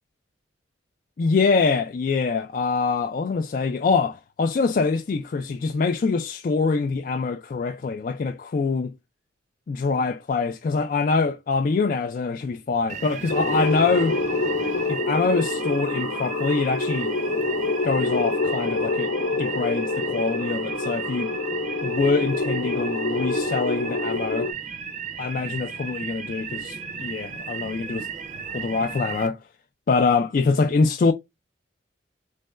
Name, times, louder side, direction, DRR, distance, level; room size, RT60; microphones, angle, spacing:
voice 1, 1.2-8.9 9.7-14.2 14.9-17.1 17.8-19.1 19.4-21.3 21.8-24.5 25.2-28.1 28.5-29.4 29.9-31.1, left 4 dB, 45° left, 0.3 m, -24 dB
sound 1, 12.9-29.3, right 6 dB, 40° right, 0.5 m, -35 dB
sound 2, 13.3-24.5, left 3 dB, 70° left, 0.7 m, -26 dB
4.4 x 3.2 x 2.4 m
head